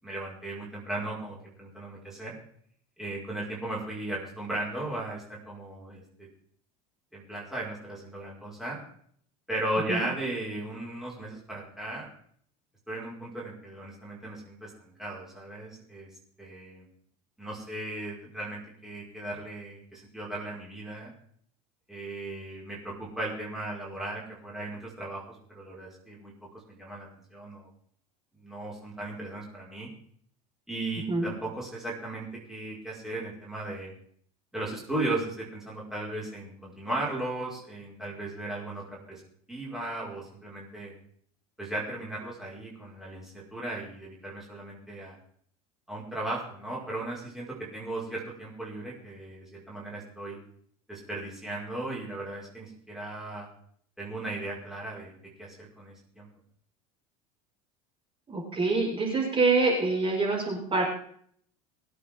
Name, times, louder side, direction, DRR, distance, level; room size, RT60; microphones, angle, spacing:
voice 1, 0.0-2.3 3.0-6.3 7.1-8.8 9.5-12.1 12.9-16.1 16.4-16.9 17.4-21.1 21.9-27.7 28.3-29.9 30.7-33.9 34.5-39.2 39.5-40.9 41.6-45.2 45.9-50.4 50.9-53.5 54.0-56.3, right 2 dB, ahead, -5 dB, 5.6 m, -36 dB
voice 2, 58.3-60.8, right 3 dB, 30° right, -2 dB, 6.2 m, -26 dB
23.5 x 8.6 x 3.8 m, 0.62 s
hypercardioid pair, 90°, 19 cm